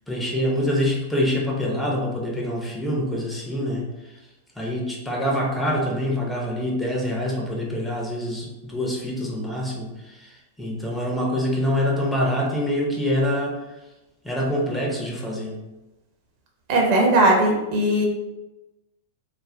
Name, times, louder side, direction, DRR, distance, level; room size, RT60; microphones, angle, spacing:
voice 1, 0.1-4.2 4.6-13.6 14.2-15.6, left 1 dB, 5° left, -2 dB, 0.6 m, -25 dB
voice 2, 16.7-18.1, right 1 dB, 45° right, 0 dB, 0.7 m, -18 dB
2.5 x 2.2 x 3.2 m, 1.0 s
figure-of-eight pair, 95°, 0 cm